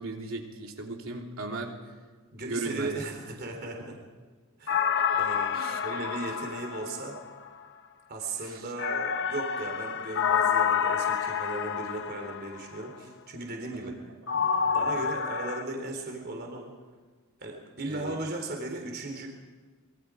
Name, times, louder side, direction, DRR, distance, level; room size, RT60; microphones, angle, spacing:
voice 1, 0.0-1.8 2.4-2.9 4.7-5.0 5.5-5.8 8.4-8.7 13.7-13.9 14.9-15.1 17.9-18.2, right 2 dB, 65° right, 1 dB, 3.4 m, -37 dB
voice 2, 2.3-3.9 4.6-4.9 5.2-7.2 8.1-13.9 14.3-16.7 17.4-19.3, right 2 dB, 45° right, 2 dB, 3.8 m, -37 dB
sound 1, 4.7-7.5 8.8-12.6 14.3-15.6, left 7 dB, 55° left, 1.1 m, -28 dB
26.0 x 23.0 x 5.1 m, 1.4 s
head